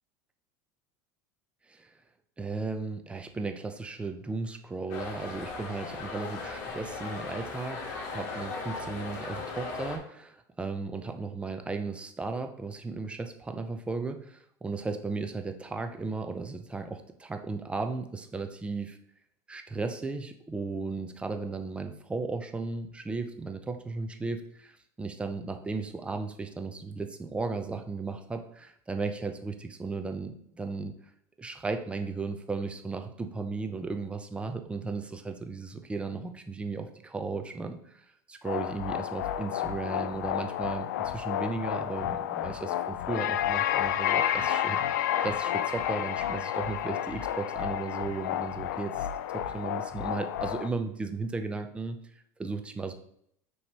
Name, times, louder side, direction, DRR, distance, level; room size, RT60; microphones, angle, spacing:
voice 1, 2.4-19.0 19.5-30.9 31.4-49.1 49.3-52.0 52.4-52.9, right 3 dB, 10° right, 7 dB, 0.6 m, -35 dB
sound 1, 4.9-10.0, left 4 dB, 60° left, 1.9 m, -37 dB
sound 2, 38.5-50.7, left 11 dB, 90° left, 0.4 m, -31 dB
5.9 x 3.1 x 5.5 m, 0.70 s
supercardioid pair, 125°, 9 cm